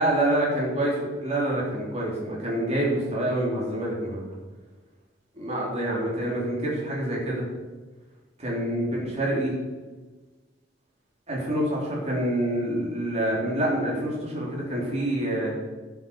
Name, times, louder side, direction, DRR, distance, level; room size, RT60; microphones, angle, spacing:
voice 1, 0.0-4.2 5.4-7.5 8.4-9.5 11.3-15.5, right 1 dB, 35° right, -4 dB, 3.6 m, -26 dB
11.5 x 7.3 x 6.6 m, 1.3 s
head